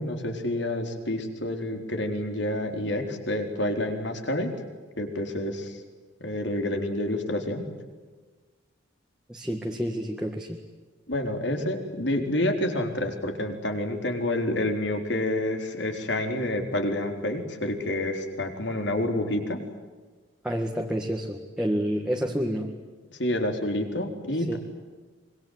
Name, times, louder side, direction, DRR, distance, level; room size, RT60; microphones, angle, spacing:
voice 1, 0.0-4.5 5.0-5.8 6.2-7.6 11.1-19.6 22.1-22.2 23.1-24.6, left 1 dB, 60° left, 5 dB, 4.1 m, -28 dB
voice 2, 9.3-10.6 20.4-22.7 24.5-24.6, equal, 5° right, 0 dB, 1.8 m, -29 dB
25.5 x 23.0 x 9.5 m, 1.4 s
head